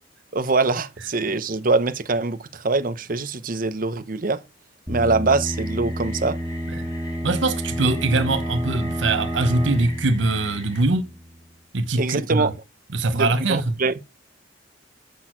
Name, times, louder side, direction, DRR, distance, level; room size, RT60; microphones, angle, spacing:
voice 1, 0.3-4.4 4.9-6.4 12.0-12.5 13.1-14.0, right 3 dB, 50° right, 0.8 m, -23 dB
sound 1, 4.9-11.5, equal, 15° right, 2.0 m, -30 dB
sound 2, 5.4-10.8, left 1 dB, 20° left, 4.3 m, -44 dB
voice 2, 7.2-11.1 11.7-12.5 12.9-13.7, right 2 dB, 80° right, 0.9 m, -22 dB
8.2 x 6.3 x 4.4 m
head